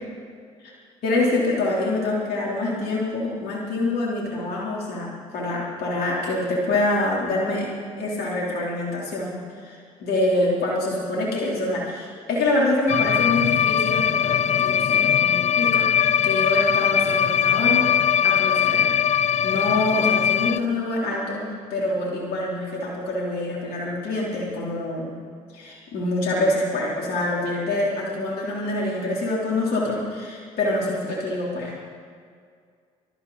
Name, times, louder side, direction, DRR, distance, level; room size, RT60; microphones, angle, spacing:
voice 1, 1.0-7.7 8.0-17.9 18.2-19.0 19.4-25.1 25.5-31.8, left 2 dB, 65° left, -4 dB, 3.5 m, -26 dB
sound 1, 12.9-20.6, left 9 dB, 40° left, 0.5 m, -21 dB
22.0 x 12.5 x 4.1 m, 2.1 s
hypercardioid pair, 50°, 17 cm